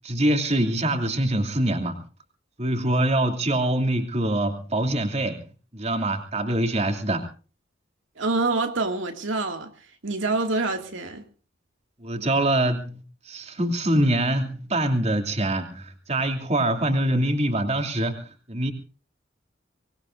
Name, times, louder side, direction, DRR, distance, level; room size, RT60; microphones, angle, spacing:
voice 1, 0.0-2.0 2.6-5.4 5.7-7.3 12.0-18.7, right 1 dB, 35° right, 2.8 m, -24 dB
voice 2, 8.2-11.2, right 3 dB, 75° right, 2.3 m, -26 dB
24.5 x 19.5 x 2.6 m
head